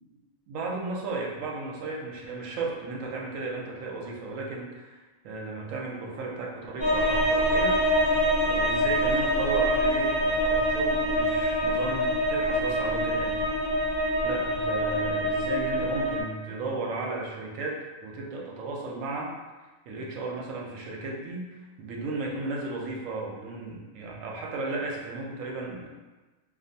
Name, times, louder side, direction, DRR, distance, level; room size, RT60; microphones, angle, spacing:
voice 1, 0.5-5.0 5.2-8.1 8.4-13.4 14.2-19.3 19.9-25.9, right 3 dB, 80° right, -1 dB, 1.0 m, -35 dB
sound 1, 6.8-16.2, equal, 10° right, 0.5 m, -25 dB
2.6 x 2.2 x 2.7 m, 1.2 s
omnidirectional pair, 1.3 m